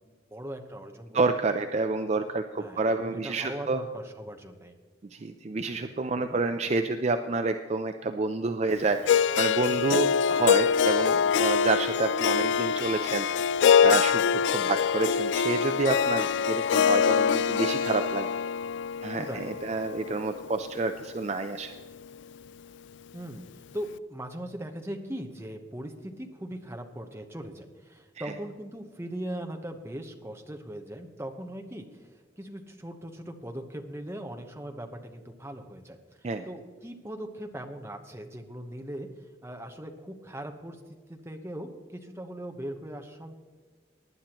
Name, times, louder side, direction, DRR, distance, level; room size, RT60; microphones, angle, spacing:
voice 1, 0.1-1.3 2.0-2.1 2.6-4.7 5.5-5.8 6.2-6.4 9.7-10.0 19.2-19.5 23.1-23.4 23.7-40.8 41.1-43.3, right 1 dB, 15° right, 4 dB, 0.9 m, -40 dB
voice 2, 1.1-3.8 5.1-13.3 13.8-18.3 19.0-21.7 28.2-28.3 36.2-36.4, right 3 dB, 35° right, 7 dB, 0.4 m, -29 dB
Harp, 9.1-21.2, left 7 dB, 70° left, 0.3 m, -25 dB
19.0 x 10.5 x 3.0 m, 1.5 s
head